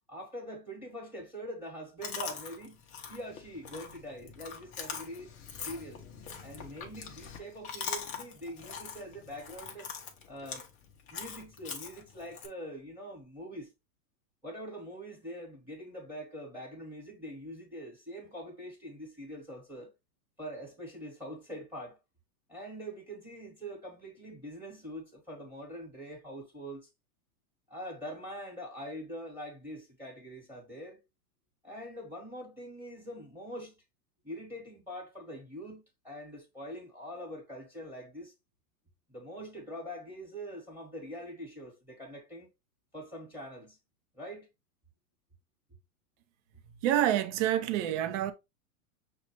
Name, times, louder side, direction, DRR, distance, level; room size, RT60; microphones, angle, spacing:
voice 1, 0.1-2.8 3.1-5.3 5.6-6.0 6.4-9.9 10.3-10.7 11.1-13.7 14.4-19.9 20.4-22.0 22.5-26.9 27.7-31.0 31.6-33.7 34.2-38.3 39.1-42.5 42.9-43.8 44.1-44.5, equal, 5° right, 1.3 m, -43 dB
Chewing mastication, 2.0-12.5, left 6 dB, 20° left, 0.5 m, -43 dB
voice 2, 46.8-48.3, right 11 dB, 55° right, 0.7 m, -27 dB
6.1 x 2.3 x 2.9 m
hypercardioid pair, 135°, 45 cm